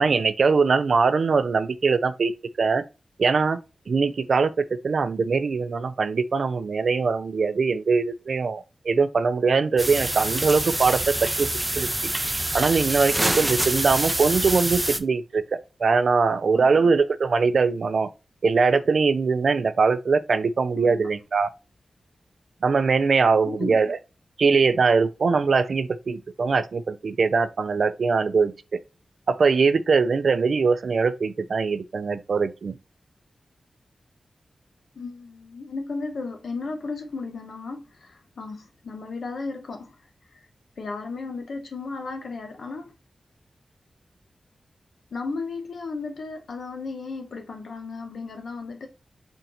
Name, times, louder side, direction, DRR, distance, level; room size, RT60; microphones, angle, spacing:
voice 1, 0.0-2.3 2.6-2.8 3.2-3.6 3.9-4.5 4.8-11.5 11.8-11.9 12.5-15.4 15.8-18.1 18.4-21.5 22.6-24.0 24.4-28.5 29.3-32.8, right 4 dB, 70° right, 0.4 m, -22 dB
sound 1, 9.8-15.0, right 1 dB, 15° right, 0.5 m, -26 dB
voice 2, 16.5-16.9 20.8-21.0 23.4-23.9 35.0-39.9 40.8-42.9 45.1-48.9, left 3 dB, 80° left, 1.0 m, -34 dB
4.4 x 2.8 x 3.8 m
wide cardioid pair, 75°, 0 cm